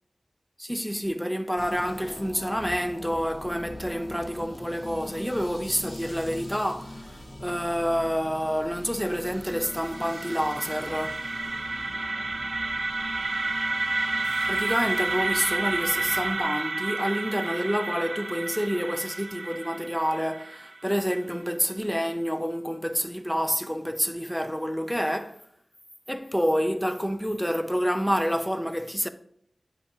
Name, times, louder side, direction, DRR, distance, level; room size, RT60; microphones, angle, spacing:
voice 1, 0.6-11.2 14.5-25.4 26.1-29.1, equal, 5° left, 0.5 m, -28 dB
sound 1, 1.6-16.4, left 1 dB, 45° left, 1.3 m, -42 dB
sound 2, 9.2-21.2, right 3 dB, 50° right, 0.4 m, -30 dB
8.3 x 5.4 x 2.9 m
wide cardioid pair, 90°, 0 cm